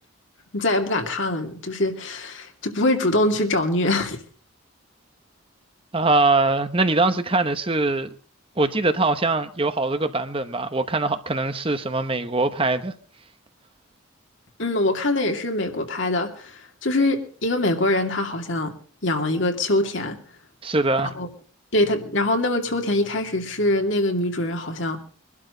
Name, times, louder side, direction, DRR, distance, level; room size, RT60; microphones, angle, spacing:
voice 1, 0.5-4.2 14.6-18.7 19.0-20.2 21.2-21.3 21.7-25.0, left 1 dB, 65° left, 2.5 m, -23 dB
voice 2, 5.9-8.1 8.6-12.9 20.6-21.1, right 2 dB, 25° right, 0.9 m, -22 dB
23.5 x 12.0 x 3.8 m
head